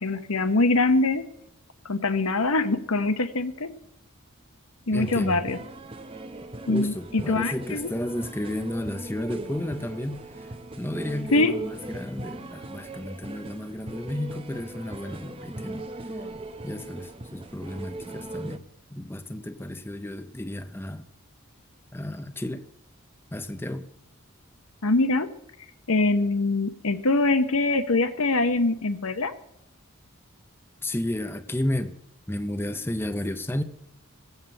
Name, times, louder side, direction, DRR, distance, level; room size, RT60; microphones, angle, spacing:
voice 1, 0.0-1.3 1.8-3.7 4.9-5.6 6.7-7.9 11.3-11.5 24.8-25.3 25.9-29.3, left 2 dB, 90° left, 9 dB, 1.1 m, -23 dB
voice 2, 4.9-5.4 6.7-15.9 16.6-18.6 18.9-21.0 21.9-22.6 23.3-23.9 30.8-32.0 32.3-33.6, left 1 dB, 10° left, 8 dB, 0.7 m, -32 dB
sound 1, 5.0-18.6, right 2 dB, 25° right, 0.8 m, -39 dB
16.5 x 7.5 x 7.8 m, 0.79 s
head